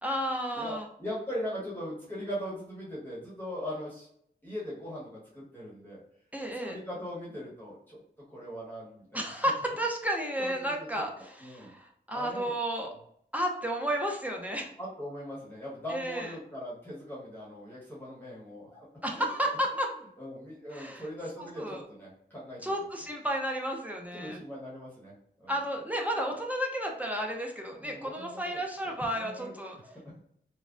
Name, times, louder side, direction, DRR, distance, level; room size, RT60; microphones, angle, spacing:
voice 1, 0.0-0.9 6.3-6.8 9.1-12.9 13.3-14.7 15.9-16.3 19.0-19.9 20.7-21.0 21.4-21.8 22.6-24.4 25.5-29.8, equal, 10° right, 0 dB, 0.6 m, -32 dB
voice 2, 0.5-4.1 4.4-6.0 6.6-8.0 8.3-9.4 10.4-10.7 11.2-11.7 12.1-12.5 14.8-18.9 19.1-19.2 20.2-22.7 24.1-25.6 27.8-28.6 28.8-29.5 29.8-30.2, equal, 10° left, -7 dB, 1.3 m, -40 dB
3.2 x 2.2 x 2.5 m, 0.68 s
cardioid pair, 55°, 18 cm